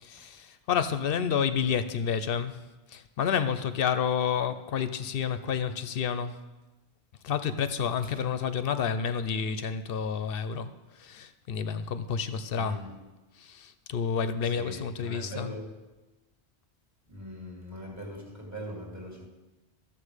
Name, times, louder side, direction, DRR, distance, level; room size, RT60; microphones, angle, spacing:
voice 1, 0.0-2.6 2.9-6.4 7.2-12.8 13.3-15.5, left 7 dB, 60° left, 0.7 m, -30 dB
voice 2, 12.5-13.0 14.5-15.7 17.1-19.3, equal, 15° right, 1.6 m, -41 dB
12.5 x 7.3 x 4.9 m
omnidirectional pair, 1.2 m